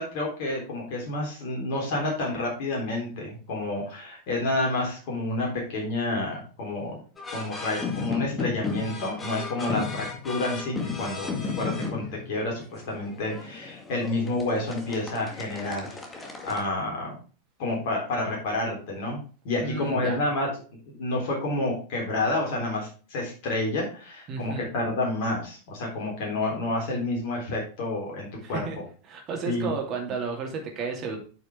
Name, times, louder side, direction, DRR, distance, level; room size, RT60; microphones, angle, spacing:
voice 1, 0.0-7.0 7.3-17.2 17.6-20.5 20.9-28.6 29.4-29.7, left 2 dB, 45° left, -1 dB, 3.7 m, -29 dB
sound 1, 7.2-16.6, left 5 dB, 15° left, 2.0 m, -34 dB
voice 2, 19.6-20.2 24.3-24.7 28.4-28.8 29.1-31.2, right 5 dB, 35° right, 1 dB, 2.7 m, -32 dB
8.8 x 6.1 x 3.6 m, 0.37 s
figure-of-eight pair, 90°, 0 cm